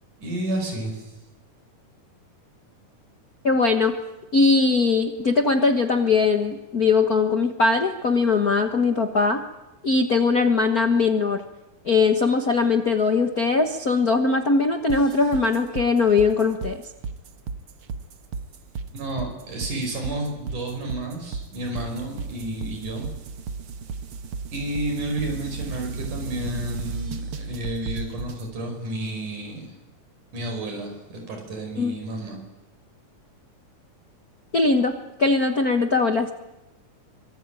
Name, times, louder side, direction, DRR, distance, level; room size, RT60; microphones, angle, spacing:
voice 1, 0.2-1.1 18.9-23.1 24.5-29.7 30.3-32.4, right 1 dB, 70° right, 3 dB, 6.8 m, -31 dB
voice 2, 3.4-4.0 4.3-9.4 9.8-11.4 11.8-16.8 31.8-31.9 34.5-36.3, left 4 dB, 60° left, 6 dB, 0.9 m, -20 dB
sound 1, 14.9-28.5, right 4 dB, 55° right, 1.8 m, -34 dB
25.0 x 23.5 x 9.1 m, 0.99 s
omnidirectional pair, 3.7 m